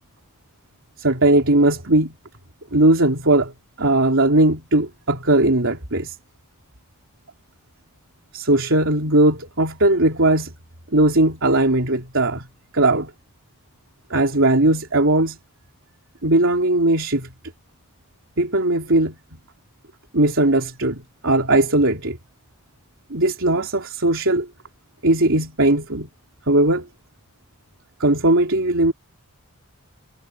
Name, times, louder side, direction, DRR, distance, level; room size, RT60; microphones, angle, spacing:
voice 1, 1.0-2.1 2.7-3.5 3.8-6.2 8.3-10.5 10.9-12.5 12.7-13.1 14.1-15.4 16.2-17.3 18.4-19.2 20.1-22.2 23.1-24.5 25.0-26.1 26.5-26.9 28.0-28.9, right 2 dB, 60° right, 3.8 m, -18 dB
head